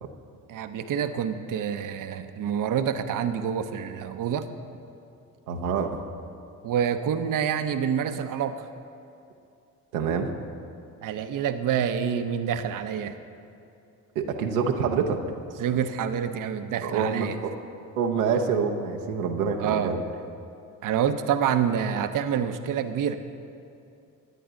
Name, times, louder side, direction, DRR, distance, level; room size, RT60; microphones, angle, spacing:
voice 1, 0.5-4.5 6.6-8.7 11.0-13.2 15.6-17.4 19.6-19.9 20.8-23.2, right 8 dB, 50° right, 9 dB, 0.8 m, -27 dB
voice 2, 5.5-6.0 9.9-10.3 14.1-15.2 16.8-17.5 18.0-20.0, right 6 dB, 85° right, 2 dB, 0.9 m, -26 dB
17.5 x 10.0 x 3.9 m, 2.6 s
hypercardioid pair, 50°, 42 cm